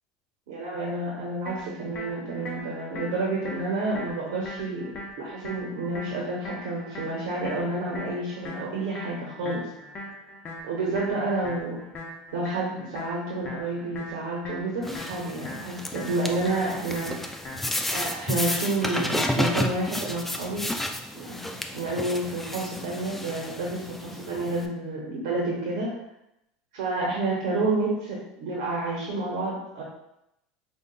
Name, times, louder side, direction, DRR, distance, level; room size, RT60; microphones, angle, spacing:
voice 1, 0.5-4.9 5.2-9.7 10.6-11.8 12.3-17.3 17.9-20.7 21.1-26.0 26.7-29.8, right 2 dB, 75° right, -3 dB, 0.9 m, -29 dB
sound 1, 1.5-19.4, left 1 dB, 35° left, 0.8 m, -41 dB
sound 2, 14.8-24.7, left 1 dB, 5° left, 0.3 m, -32 dB
5.0 x 2.4 x 2.2 m, 0.83 s
supercardioid pair, 105°, 4 cm